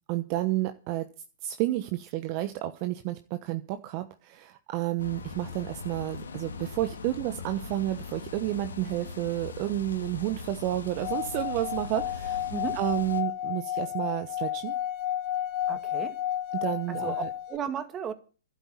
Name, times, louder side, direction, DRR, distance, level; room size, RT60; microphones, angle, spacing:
voice 1, 0.1-1.1 1.4-14.7 16.5-17.3, right 15 dB, 40° right, 1.0 m, -31 dB
sound 1, 5.0-13.2, left 5 dB, 85° left, 2.0 m, -41 dB
Singing / Glass, 11.0-17.6, left 11 dB, 40° left, 2.0 m, -32 dB
voice 2, 15.7-16.2 16.9-18.1, right 7 dB, 20° right, 2.0 m, -35 dB
12.0 x 8.5 x 8.8 m
hypercardioid pair, 135°, 0 cm